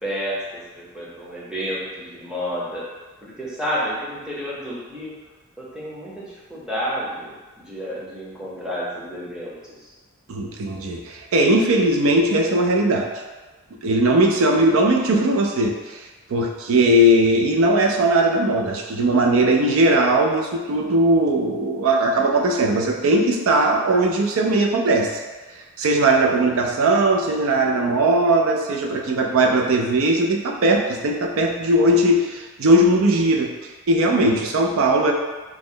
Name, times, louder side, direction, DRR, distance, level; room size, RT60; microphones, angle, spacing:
voice 1, 0.0-2.9 3.2-5.2 5.6-9.9, equal, 5° right, -7 dB, 0.6 m, -30 dB
voice 2, 10.3-13.1 13.8-16.0 16.3-25.1 25.8-33.5 33.9-35.1, right 1 dB, 65° right, 2 dB, 0.4 m, -19 dB
3.0 x 2.1 x 3.7 m, 1.3 s
head